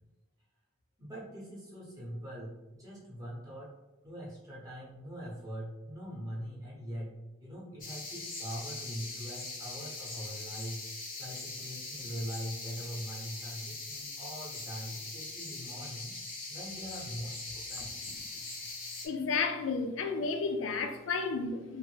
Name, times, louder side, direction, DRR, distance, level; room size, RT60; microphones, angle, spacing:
voice 1, 1.0-3.7 4.0-7.1 7.4-10.8 11.2-16.1 16.5-17.9, equal, 15° right, 0.9 m, -42 dB
sound 1, 7.8-19.1, left 3 dB, 45° left, 0.7 m, -42 dB
voice 2, 19.0-21.8, left 4 dB, 80° left, 0.4 m, -32 dB
3.2 x 2.1 x 3.1 m
head